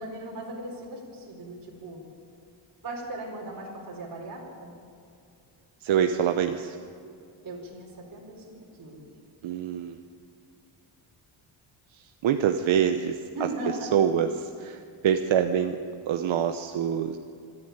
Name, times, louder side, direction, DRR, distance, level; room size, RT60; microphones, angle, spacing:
voice 1, 0.0-2.0 2.8-4.7 7.4-9.0 13.3-13.9, right 2 dB, 45° right, -3 dB, 4.6 m, -38 dB
voice 2, 5.8-6.8 9.4-10.0 11.9-13.2 13.9-15.8 16.1-17.2, right 8 dB, 70° right, 6 dB, 1.0 m, -25 dB
26.5 x 10.5 x 9.5 m, 2.4 s
cardioid pair, 140°, 48 cm